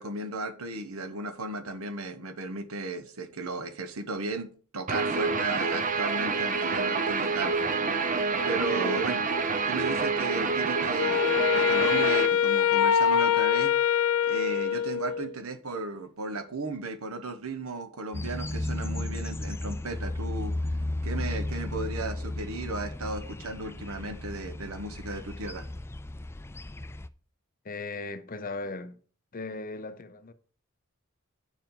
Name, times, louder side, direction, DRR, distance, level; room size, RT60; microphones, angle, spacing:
voice 1, 0.0-7.7 8.5-9.2 9.7-13.7 14.2-20.8 21.0-25.7, right 3 dB, 80° right, 1.2 m, -35 dB
Guitar, 4.9-12.3, right 4 dB, 40° right, 0.9 m, -27 dB
voice 2, 8.4-9.0 27.6-29.0 29.3-30.3, left 3 dB, 40° left, 0.8 m, -37 dB
Wind instrument woodwind instrument, 11.0-15.4, left 8 dB, 90° left, 0.6 m, -24 dB
sound 1, 18.1-27.1, left 1 dB, 10° left, 0.3 m, -34 dB
8.9 x 7.0 x 3.9 m
head